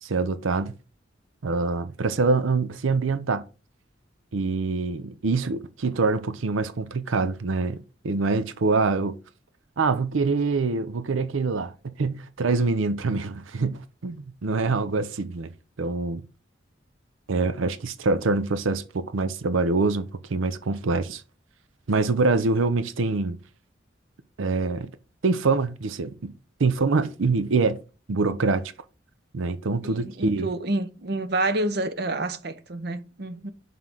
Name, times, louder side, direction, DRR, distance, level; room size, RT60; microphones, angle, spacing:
voice 1, 0.0-0.7 1.4-3.4 4.3-7.8 8.0-9.1 9.8-15.5 15.8-16.2 17.3-21.2 21.9-23.4 24.4-24.9 25.2-26.3 26.6-27.8 28.1-28.7 29.3-30.5, right 3 dB, 90° right, 0.6 m, -25 dB
voice 2, 29.8-33.5, right 2 dB, 55° right, 0.7 m, -28 dB
5.6 x 3.7 x 6.0 m
head